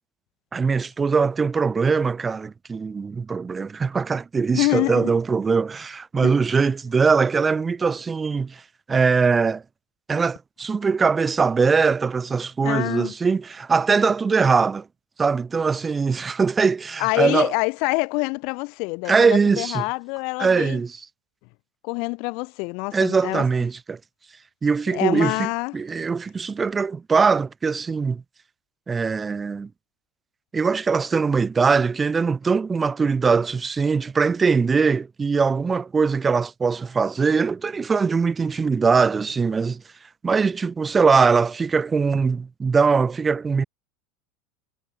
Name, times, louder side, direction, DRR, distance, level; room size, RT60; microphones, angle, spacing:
voice 1, 0.5-8.6 8.9-9.6 10.1-14.9 15.2-17.5 19.1-19.8 20.4-21.0 22.9-24.0 24.6-28.2 28.9-29.7 30.5-39.8 40.2-43.6, right 5 dB, 20° right, 1.1 m, -21 dB
voice 2, 4.5-5.1 6.2-6.3 12.6-13.1 17.0-20.8 21.8-23.4 24.9-25.7, left 30 dB, 60° left, 1.3 m, -26 dB
hypercardioid pair, 95°, 0 cm